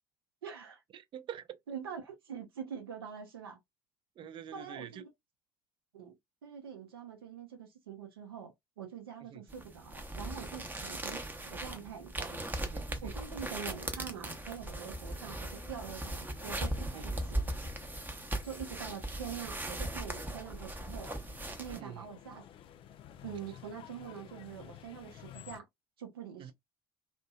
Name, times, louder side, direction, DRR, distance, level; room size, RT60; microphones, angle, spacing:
voice 1, 0.4-0.8 1.7-3.6 4.5-5.1 5.9-6.2 6.4-12.5 13.0-17.5 18.4-21.1 21.6-22.4 23.2-25.7 26.0-26.5, right 7 dB, 85° right, 0.6 m, -45 dB
voice 2, 0.9-1.6 4.2-5.0 9.3-9.4 12.6-13.1 16.9-17.2 21.7-22.1 26.4-26.5, right 9 dB, 45° right, 0.4 m, -46 dB
sound 1, 9.5-21.8, right 1 dB, 15° right, 0.7 m, -39 dB
sound 2, 13.5-25.6, left 10 dB, 50° left, 0.4 m, -54 dB
2.6 x 2.2 x 2.3 m
hypercardioid pair, 60°, 12 cm